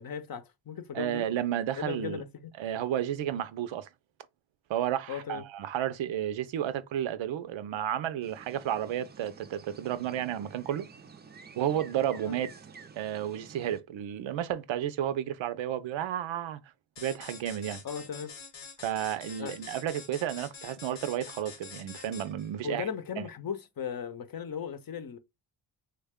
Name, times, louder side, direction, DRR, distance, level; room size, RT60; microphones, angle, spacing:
voice 1, 0.0-1.3 1.8-2.5 5.1-5.4 12.2-12.4 17.8-18.3 19.4-19.5 22.6-25.2, left 7 dB, 50° left, 0.7 m, -37 dB
voice 2, 0.9-2.2 2.6-3.9 4.7-10.9 11.6-12.5 13.0-16.6 17.0-17.8 18.8-22.8 23.2-23.3, right 11 dB, 80° right, 0.6 m, -32 dB
sound 1, 8.2-13.8, right 5 dB, 25° right, 0.4 m, -50 dB
sound 2, 17.0-22.5, left 5 dB, 85° left, 1.0 m, -46 dB
3.3 x 2.2 x 3.5 m
cardioid pair, 60°, 46 cm